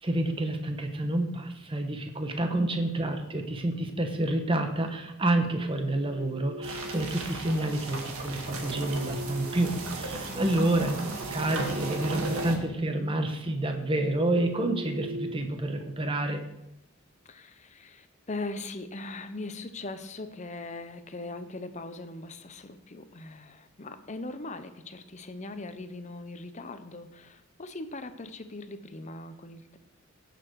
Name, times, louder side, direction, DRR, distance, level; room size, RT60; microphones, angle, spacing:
voice 1, 0.0-11.0 11.3-16.4, right 1 dB, 25° right, 5 dB, 1.0 m, -29 dB
voice 2, 2.4-2.7 10.3-11.0 17.2-29.8, left 2 dB, 30° left, 10 dB, 0.7 m, -40 dB
sound 1, 5.7-7.2 8.2-10.3 10.8-12.7 13.0-13.2 13.7-16.1, right 1 dB, 55° right, 0.5 m, -41 dB
sound 2, 6.6-12.6, right 2 dB, 80° right, 1.8 m, -36 dB
16.0 x 6.9 x 4.7 m, 0.87 s
head